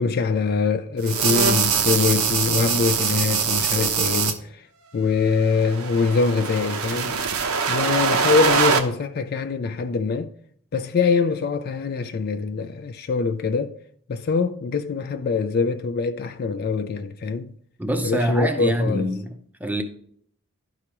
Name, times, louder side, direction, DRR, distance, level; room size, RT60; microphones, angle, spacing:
voice 1, 0.0-4.6 4.9-7.2 7.7-10.3 10.7-13.8 14.1-17.5 18.0-19.1, left 4 dB, 45° left, 0.3 m, -23 dB
sound 1, 1.0-4.3 5.5-8.8, right 6 dB, 75° right, 0.7 m, -23 dB
voice 2, 17.8-19.8, right 1 dB, 5° right, 0.6 m, -25 dB
11.5 x 4.8 x 2.9 m
head